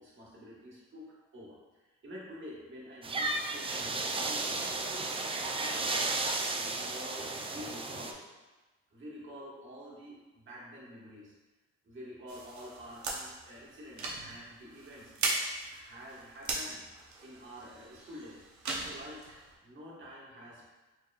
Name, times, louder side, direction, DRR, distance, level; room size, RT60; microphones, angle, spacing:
voice 1, 0.0-5.9 6.6-8.2 8.9-11.3 11.8-15.4 15.7-16.9 17.2-18.4 18.8-20.7, equal, 40° right, -5 dB, 1.4 m, -48 dB
sound 1, 3.0-8.1, right 3 dB, 20° right, 0.3 m, -33 dB
sound 2, 12.3-19.6, right 3 dB, 70° right, 0.8 m, -39 dB
4.6 x 2.9 x 2.4 m, 1.2 s
cardioid pair, 90°, 30 cm